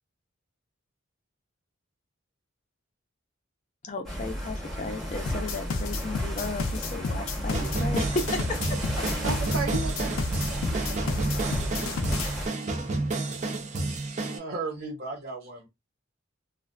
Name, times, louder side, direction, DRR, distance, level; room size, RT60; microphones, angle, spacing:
voice 1, 3.8-9.1, left 3 dB, 35° left, 0.5 m, -34 dB
sound 1, 4.0-12.5, equal, ahead, 0.9 m, -33 dB
sound 2, 5.3-12.3, left 3 dB, 85° left, 0.5 m, -31 dB
sound 3, 7.5-14.4, right 2 dB, 35° right, 0.5 m, -31 dB
voice 2, 9.2-12.3, right 4 dB, 90° right, 0.9 m, -37 dB
voice 3, 14.2-15.7, right 3 dB, 55° right, 1.1 m, -36 dB
2.4 x 2.4 x 2.2 m
head